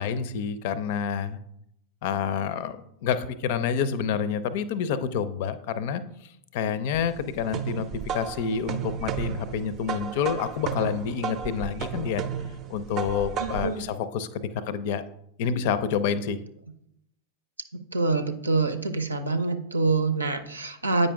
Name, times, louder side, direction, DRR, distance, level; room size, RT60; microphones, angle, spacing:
voice 1, 0.0-1.4 2.0-6.0 6.5-12.2 12.7-15.0 15.4-16.4, left 7 dB, 50° left, 14 dB, 0.5 m, -28 dB
sound 1, 6.9-13.8, right 7 dB, 35° right, 0.5 m, -33 dB
voice 2, 13.4-13.9 17.9-21.1, right 3 dB, 80° right, 9 dB, 0.6 m, -26 dB
8.4 x 5.3 x 3.5 m, 0.76 s
figure-of-eight pair, 90°, 0 cm